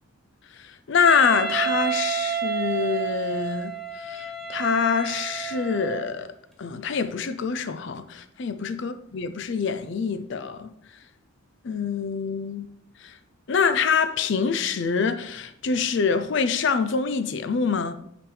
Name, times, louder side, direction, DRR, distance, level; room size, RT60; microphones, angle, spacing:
voice 1, 0.6-3.7 4.0-6.3 6.6-10.7 11.6-12.7 13.0-13.2 13.5-17.9, left 5 dB, 55° left, 0.4 m, -25 dB
Wind instrument woodwind instrument, 1.1-6.1, right 7 dB, ahead, 0.8 m, -30 dB
6.0 x 5.1 x 3.3 m
head